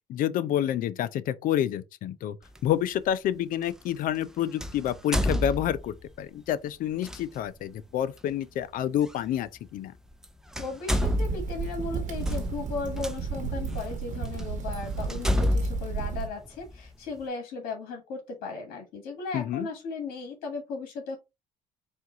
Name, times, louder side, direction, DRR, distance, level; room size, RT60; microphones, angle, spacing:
voice 1, 0.1-2.4 2.6-9.9 19.3-19.7, left 11 dB, 65° left, 0.5 m, -28 dB
sound 1, 2.5-2.7 4.6-6.1 7.0-7.2 9.1-9.2 10.1-10.2 10.5-13.1 13.8-13.9 14.4-14.5 15.1-16.9, left 1 dB, 5° right, 0.5 m, -28 dB
voice 2, 10.6-21.2, left 4 dB, 80° left, 1.4 m, -36 dB
sound 2, 11.0-16.3, right 5 dB, 55° right, 1.1 m, -33 dB
4.4 x 2.5 x 3.8 m
supercardioid pair, 85°, 16 cm